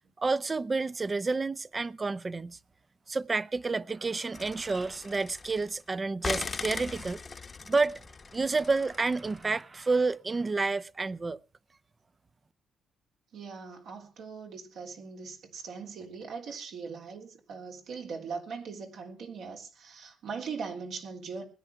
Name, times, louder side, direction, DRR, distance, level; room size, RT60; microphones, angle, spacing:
voice 1, 0.2-2.6 3.1-7.2 7.7-8.0 8.3-11.4, right 3 dB, 30° right, 0.7 m, -29 dB
sound 1, 4.3-5.8 6.2-9.5, left 4 dB, 35° left, 1.0 m, -39 dB
voice 2, 13.3-21.5, right 5 dB, 75° right, 3.4 m, -40 dB
20.0 x 9.9 x 5.8 m
cardioid pair, 90°, 0 cm